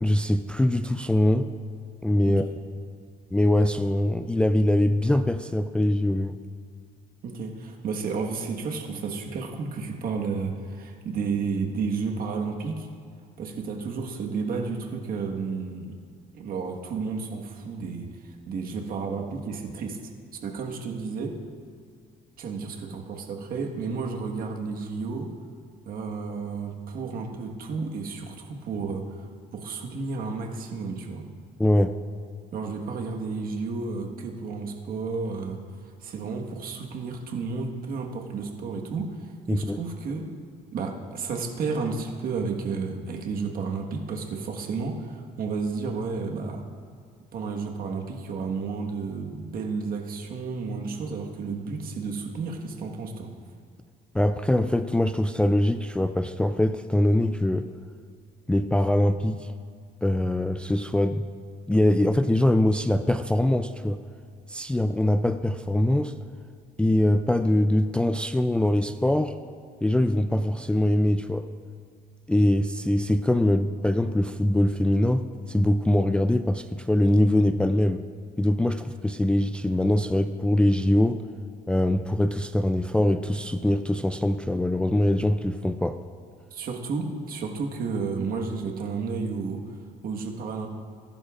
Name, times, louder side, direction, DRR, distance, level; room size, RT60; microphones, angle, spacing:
voice 1, 0.0-1.5 2.0-2.5 3.3-6.3 31.6-31.9 39.5-39.8 54.1-57.7 58.5-59.5 60.0-61.2 61.7-64.0 64.5-66.1 66.8-69.4 69.8-71.5 72.3-78.0 78.4-81.2 81.7-86.0, left 1 dB, 5° left, 9 dB, 0.3 m, -23 dB
voice 2, 2.2-2.5 7.2-12.9 13.4-16.0 16.3-20.0 20.3-21.4 22.4-25.3 25.8-31.2 32.5-35.6 36.0-40.3 40.7-46.6 47.3-53.3 86.5-89.6 90.0-90.7, right 4 dB, 60° right, 2 dB, 1.5 m, -32 dB
20.0 x 11.0 x 2.5 m, 2.2 s
cardioid pair, 110°, 17 cm